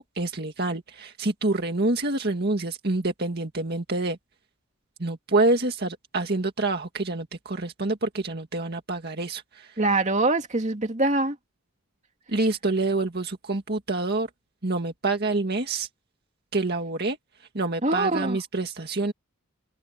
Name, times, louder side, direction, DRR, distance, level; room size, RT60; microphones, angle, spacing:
voice 1, 0.0-4.2 5.0-9.7 12.3-14.3 14.6-15.9 16.5-17.2 17.5-19.1, right 2 dB, 50° right, 2.0 m, -27 dB
voice 2, 9.8-11.4 17.8-18.4, right 2 dB, 35° right, 2.5 m, -24 dB
head